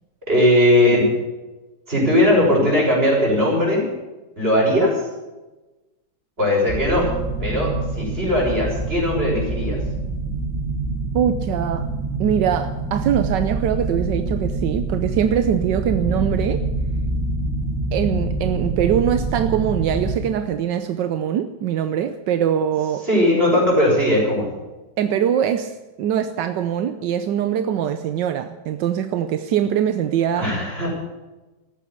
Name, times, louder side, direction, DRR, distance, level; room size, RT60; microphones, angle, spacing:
voice 1, 0.3-1.1 1.9-3.9 4.4-5.0 6.4-7.1 7.4-9.8 23.0-24.5 30.3-30.9, left 1 dB, 35° right, -3 dB, 6.8 m, -18 dB
sound 1, 6.7-20.1, right 2 dB, ahead, 2.4 m, -26 dB
voice 2, 11.1-11.9 12.2-16.6 17.9-23.1 25.0-30.5, right 9 dB, 85° right, 9 dB, 1.4 m, -22 dB
14.0 x 9.8 x 9.9 m, 1.1 s
omnidirectional pair, 1.9 m